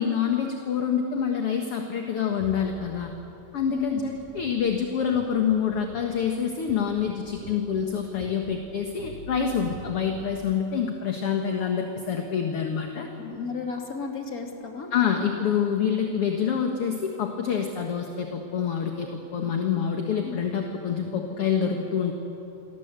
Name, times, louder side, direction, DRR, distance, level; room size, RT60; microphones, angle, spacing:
voice 1, 0.0-3.1 3.5-13.1 14.9-22.1, left 7 dB, 50° left, 3 dB, 2.1 m, -26 dB
sound 1, 2.3-10.4, right 2 dB, 75° right, 4.7 m, -45 dB
voice 2, 3.7-4.0 13.2-14.9 20.2-20.4, left 5 dB, 25° left, 2 dB, 3.2 m, -34 dB
28.5 x 23.0 x 8.2 m, 2.9 s
omnidirectional pair, 3.8 m